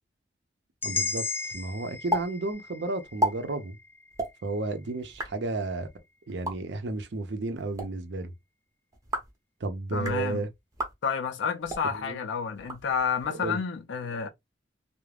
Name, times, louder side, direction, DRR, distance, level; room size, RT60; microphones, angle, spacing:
sound 1, 0.8-4.8, left 4 dB, 10° left, 0.3 m, -36 dB
voice 1, 0.8-3.8 4.4-5.9 6.3-8.3 9.6-10.5 11.9-12.2 13.3-13.6, right 2 dB, 70° right, 0.6 m, -32 dB
sound 2, 2.1-2.2 2.5-2.6 3.0-3.3 4.1-4.3 5.0-5.3 6.3-6.5 7.6-7.9 8.9-9.4 9.9-10.2 10.7-10.9 11.6-11.8 12.5-13.2, equal, 20° right, 0.6 m, -32 dB
voice 2, 9.9-10.4 11.0-14.3, left 6 dB, 85° left, 0.4 m, -30 dB
2.4 x 2.0 x 3.2 m
head